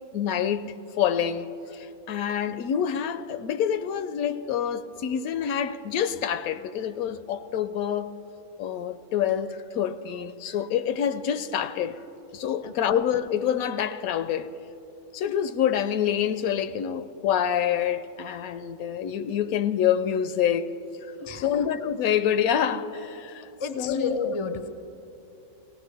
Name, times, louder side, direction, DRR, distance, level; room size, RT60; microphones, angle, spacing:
voice 1, 0.1-8.1 8.6-12.0 12.3-14.6 15.1-20.8 21.4-24.3, left 9 dB, 80° left, 1.0 m, -27 dB
voice 2, 12.6-13.0 21.2-21.6 23.6-24.7, left 4 dB, 40° left, 0.4 m, -32 dB
18.5 x 17.5 x 3.4 m
omnidirectional pair, 1.5 m